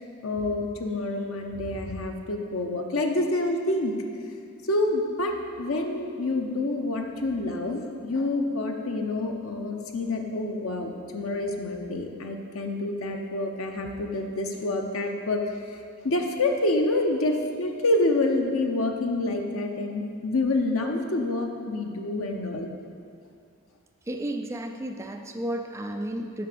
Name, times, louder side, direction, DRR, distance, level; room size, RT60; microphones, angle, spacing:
voice 1, 0.2-3.9 4.7-15.4 16.0-22.7, left 2 dB, 85° left, 3 dB, 0.9 m, -27 dB
voice 2, 24.1-26.5, right 1 dB, 15° right, 4 dB, 0.4 m, -32 dB
7.7 x 6.0 x 6.8 m, 2.3 s
head